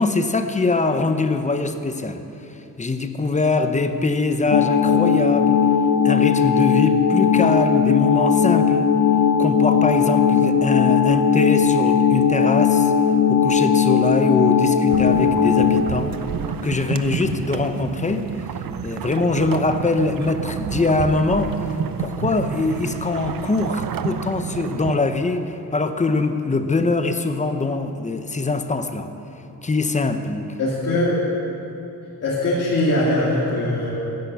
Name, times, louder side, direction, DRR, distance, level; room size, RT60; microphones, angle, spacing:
voice 1, 0.0-2.2 2.8-5.6 6.0-8.9 9.4-12.9 13.3-16.2 16.6-18.3 18.8-21.5 22.0-29.1 29.6-30.5, left 3 dB, 20° left, 8 dB, 0.8 m, -23 dB
sound 1, 4.5-15.8, left 7 dB, 65° left, 0.7 m, -18 dB
sound 2, 14.9-25.0, right 8 dB, 65° right, 0.7 m, -29 dB
voice 2, 30.6-31.2 32.2-33.9, left 1 dB, 45° left, -8 dB, 2.6 m, -21 dB
15.5 x 10.5 x 6.9 m, 3.0 s
wide cardioid pair, 130°, 37 cm